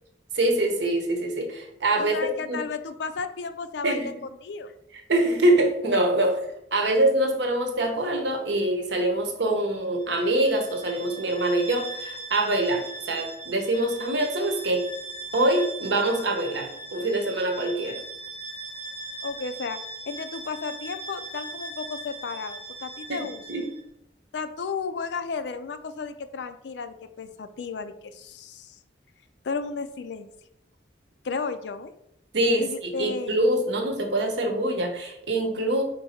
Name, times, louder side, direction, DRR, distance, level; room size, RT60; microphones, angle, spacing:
voice 1, 0.3-2.6 3.8-4.1 5.1-6.4 6.7-14.9 15.3-18.0 23.1-23.7 32.3-32.7 33.0-35.8, right 1 dB, 90° right, 4 dB, 0.9 m, -24 dB
voice 2, 2.0-4.1 4.4-4.7 19.2-19.8 20.1-23.4 24.3-28.8 29.4-30.3 31.2-31.9 32.6-33.4, left 5 dB, 75° left, 11 dB, 0.4 m, -33 dB
Bowed string instrument, 10.0-23.8, right 2 dB, 30° left, 1.4 m, -39 dB
4.5 x 2.7 x 4.2 m, 0.78 s
head